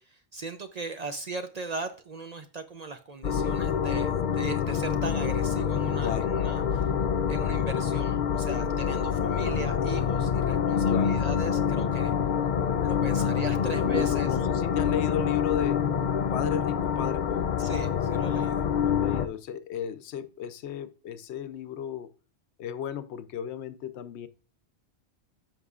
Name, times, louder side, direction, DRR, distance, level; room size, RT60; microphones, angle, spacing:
voice 1, 0.0-6.9 7.3-12.1 12.8-14.4 17.6-18.7, right 3 dB, 50° right, 0.5 m, -38 dB
sound 1, 3.2-19.3, left 7 dB, 55° left, 0.6 m, -26 dB
voice 2, 6.0-6.3 7.6-7.9 8.4-8.7 10.9-11.2 13.1-15.8 16.3-17.5 18.8-22.1 22.6-24.3, left 9 dB, 80° left, 0.9 m, -35 dB
13.5 x 5.3 x 2.4 m
omnidirectional pair, 1.1 m